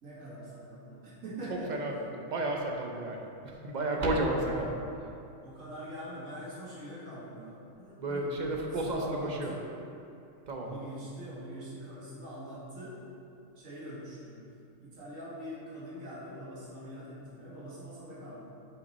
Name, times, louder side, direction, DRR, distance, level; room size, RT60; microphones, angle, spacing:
voice 1, 0.0-1.8 3.9-4.7 5.4-9.7 10.6-13.0 13.5-14.4 14.8-18.4, equal, 70° right, -7 dB, 2.0 m, -43 dB
voice 2, 1.5-2.0 2.2-4.7 8.0-9.5 10.5-10.7, right 2 dB, 40° right, 0 dB, 0.7 m, -32 dB
7.1 x 5.2 x 4.1 m, 2.6 s
omnidirectional pair, 1.4 m